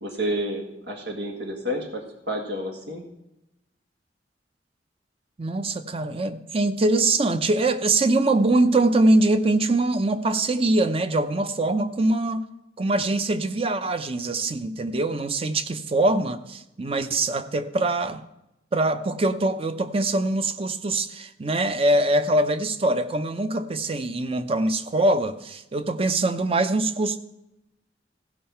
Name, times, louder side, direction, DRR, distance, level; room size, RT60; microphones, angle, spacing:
voice 1, 0.0-3.0, equal, 90° right, 1.8 m, -30 dB
voice 2, 5.4-12.5 12.8-18.2 18.7-27.2, right 2 dB, 35° right, 0.6 m, -23 dB
15.5 x 5.5 x 5.7 m
head